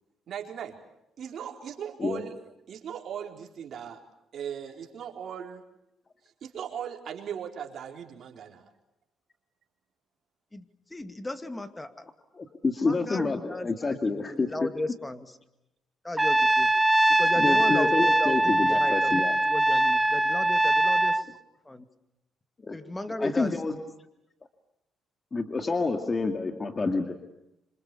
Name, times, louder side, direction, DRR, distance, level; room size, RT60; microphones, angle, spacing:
voice 1, 0.3-0.8 1.2-2.4 2.7-4.0 4.3-5.6 6.4-8.7, right 8 dB, 65° right, 2 dB, 4.4 m, -38 dB
voice 2, 10.5-12.1 12.8-15.3 16.0-16.7 17.1-21.3 21.6-21.9 22.7-23.5, left 2 dB, 15° left, 10 dB, 2.3 m, -36 dB
voice 3, 12.3-14.7 17.4-19.4 19.7-19.8 22.6-22.8 23.2-23.8 25.3-27.1, left 3 dB, 35° left, 6 dB, 2.2 m, -28 dB
Trumpet, 16.2-21.2, right 1 dB, 10° right, 1.0 m, -22 dB
26.5 x 26.5 x 7.0 m, 0.87 s
cardioid pair, 80°, 0 cm